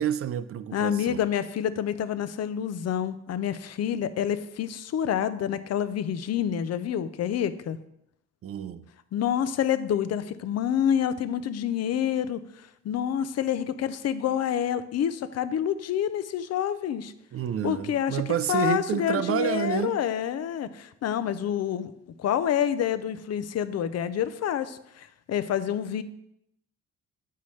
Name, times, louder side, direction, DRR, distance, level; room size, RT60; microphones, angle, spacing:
voice 1, 0.0-1.2 8.4-8.8 17.3-20.0, right 9 dB, 50° right, 0.5 m, -29 dB
voice 2, 0.7-7.8 9.1-12.4 12.8-17.1 17.6-18.2 18.5-21.9 22.2-26.0, left 9 dB, 55° left, 0.6 m, -28 dB
8.4 x 5.6 x 3.2 m
cardioid pair, 90°, 30 cm